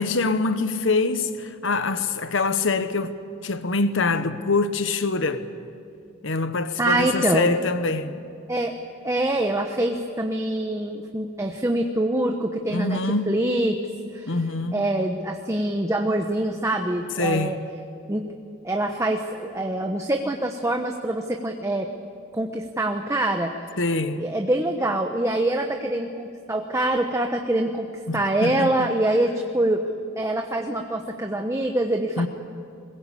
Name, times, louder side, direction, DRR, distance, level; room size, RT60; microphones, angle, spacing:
voice 1, 0.0-3.1 3.4-5.5 6.2-8.2 12.7-13.4 14.3-14.9 17.2-17.6 23.8-24.3 28.1-28.9 32.2-32.3, left 3 dB, 70° left, 1.1 m, -24 dB
voice 2, 6.8-7.5 8.5-8.8 9.0-13.0 13.3-13.8 14.1-14.4 14.7-17.6 18.1-18.3 18.6-21.9 22.3-23.5 24.2-32.3, right 1 dB, 15° right, 1.0 m, -25 dB
22.0 x 21.0 x 8.4 m
head